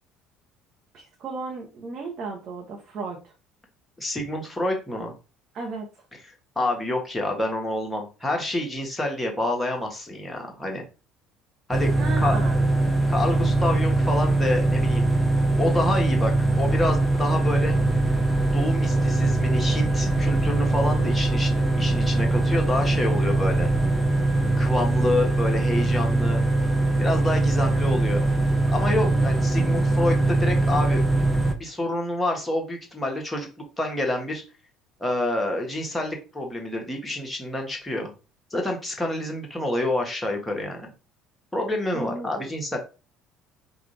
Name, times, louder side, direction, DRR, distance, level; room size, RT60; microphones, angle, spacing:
voice 1, 0.9-3.3 5.5-5.8 12.0-12.7 29.1-29.2 41.9-42.5, right 3 dB, 45° right, 0 dB, 1.0 m, -35 dB
voice 2, 4.0-5.1 6.5-10.8 11.7-11.9 12.2-12.4 13.1-15.1 15.6-17.8 18.5-23.7 24.6-26.4 27.0-28.2 28.7-31.0 31.5-33.5 33.8-34.4 35.0-38.1 38.5-40.9 41.5-42.8, left 1 dB, 10° left, 1 dB, 1.4 m, -28 dB
sound 1, 11.7-31.5, right 2 dB, 10° right, 0.9 m, -22 dB
5.0 x 2.5 x 3.2 m, 0.32 s
figure-of-eight pair, 55°, 0 cm